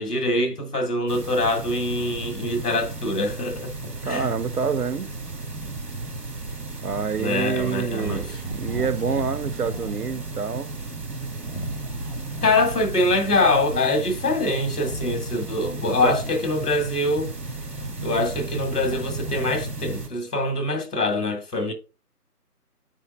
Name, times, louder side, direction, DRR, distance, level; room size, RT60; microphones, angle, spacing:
voice 1, 0.0-3.7 4.0-4.3 7.2-8.2 12.4-17.3 18.0-21.7, left 2 dB, 75° left, 2.4 m, -24 dB
sound 1, 1.1-20.1, right 2 dB, 90° right, 2.1 m, -34 dB
voice 2, 4.0-5.1 6.8-10.7 15.8-16.1, right 6 dB, 70° right, 0.8 m, -27 dB
sound 2, 8.0-10.3 11.4-13.8 14.8-17.1 17.6-20.0, right 1 dB, 35° left, 0.6 m, -37 dB
9.1 x 3.9 x 3.9 m
figure-of-eight pair, 170°, 47 cm